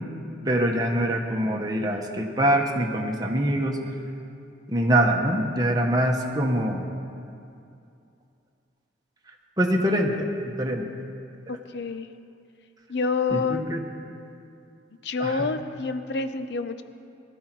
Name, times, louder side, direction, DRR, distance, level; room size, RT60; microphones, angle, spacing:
voice 1, 0.4-3.8 4.7-6.9 9.6-10.3 10.6-10.9 13.3-13.8 15.2-15.5, right 1 dB, 20° right, 1 dB, 1.4 m, -24 dB
voice 2, 11.5-12.1 12.9-13.7 15.0-16.8, left 4 dB, 60° left, 10 dB, 0.7 m, -28 dB
20.0 x 13.0 x 4.6 m, 2.6 s
head